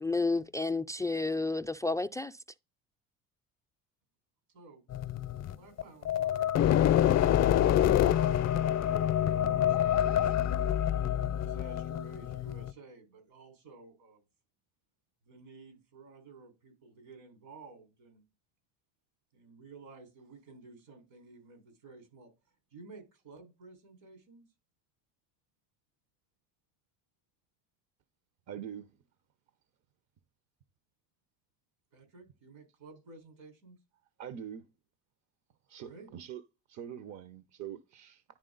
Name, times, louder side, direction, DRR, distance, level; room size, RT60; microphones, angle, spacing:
voice 1, 0.0-2.4, left 3 dB, 10° left, 0.3 m, -31 dB
voice 2, 4.5-4.8 5.5-10.7 11.4-14.2 15.3-18.2 19.3-22.3 22.7-24.4 31.9-33.8 35.8-36.1, right 3 dB, 85° right, 4.5 m, -53 dB
sound 1, 4.9-12.7, left 11 dB, 50° left, 0.6 m, -27 dB
voice 3, 28.5-28.9 34.2-34.6 35.7-38.2, right 9 dB, 55° right, 0.8 m, -44 dB
10.5 x 3.7 x 3.9 m
supercardioid pair, 75°, 33 cm